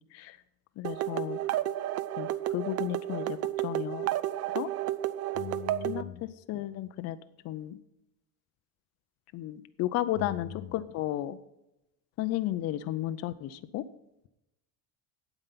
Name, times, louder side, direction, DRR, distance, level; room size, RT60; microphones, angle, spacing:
voice 1, 0.8-1.6 2.2-3.4 3.6-4.1 4.5-4.7 5.9-7.2 7.4-7.8 9.3-11.4 12.2-13.8, left 14 dB, 40° left, 10 dB, 0.5 m, -33 dB
sound 1, 0.8-6.0, right 13 dB, 40° right, 0.4 m, -32 dB
voice 2, 5.3-6.2 10.2-10.7, left 12 dB, 70° left, 14 dB, 0.7 m, -40 dB
9.0 x 8.1 x 5.8 m, 0.88 s
cardioid pair, 145°, 40 cm